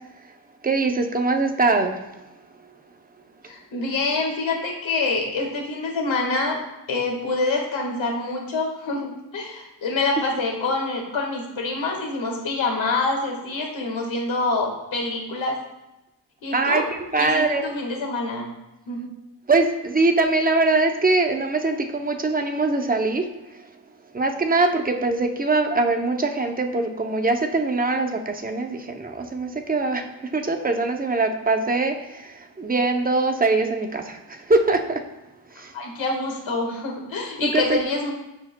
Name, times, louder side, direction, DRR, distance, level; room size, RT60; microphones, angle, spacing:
voice 1, 0.6-2.0 16.5-17.7 19.5-23.3 24.1-35.0 35.6-35.7 37.4-37.8, right 3 dB, 20° right, 5 dB, 0.6 m, -22 dB
voice 2, 3.5-6.6 6.9-15.6 16.4-16.8 17.2-18.5 18.9-19.1 35.7-38.1, left 3 dB, 90° left, 1 dB, 1.7 m, -26 dB
13.0 x 4.9 x 2.2 m, 0.96 s
wide cardioid pair, 150°, 44 cm